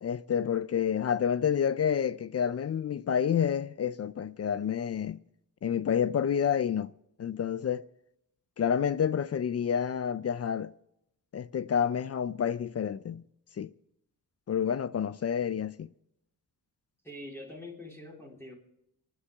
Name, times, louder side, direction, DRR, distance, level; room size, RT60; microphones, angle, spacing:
voice 1, 0.0-5.2 5.6-6.9 7.2-7.8 8.6-10.7 11.3-13.2 13.6-13.7 14.5-15.9, left 8 dB, 40° left, 0.5 m, -29 dB
voice 2, 17.0-18.5, left 1 dB, 5° left, 3.7 m, -44 dB
28.0 x 9.9 x 3.6 m
cardioid pair, 110°, 40 cm